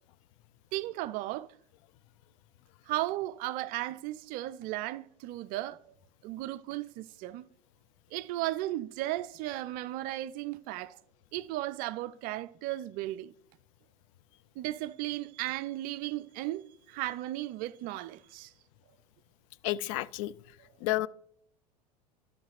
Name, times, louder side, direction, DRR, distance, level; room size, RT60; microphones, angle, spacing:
voice 1, 0.7-1.5 2.9-5.8 6.2-7.5 8.1-11.0 11.3-13.3 14.6-18.5, right 16 dB, 45° right, 0.5 m, -35 dB
voice 2, 19.6-20.3 20.8-21.1, left 17 dB, 55° left, 0.4 m, -30 dB
13.0 x 5.9 x 3.2 m
figure-of-eight pair, 80°, 20 cm